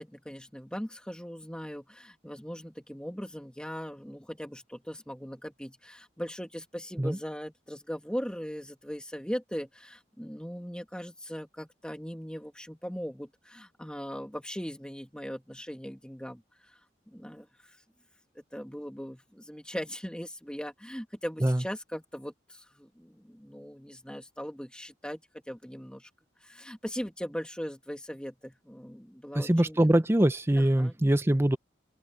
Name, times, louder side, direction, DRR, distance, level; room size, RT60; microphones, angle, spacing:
voice 1, 0.0-16.8 17.1-17.8 18.3-26.1 26.4-29.9 30.6-31.0, equal, 5° left, 2.4 m, -39 dB
voice 2, 29.3-31.6, right 1 dB, 15° right, 0.6 m, -23 dB
open air
head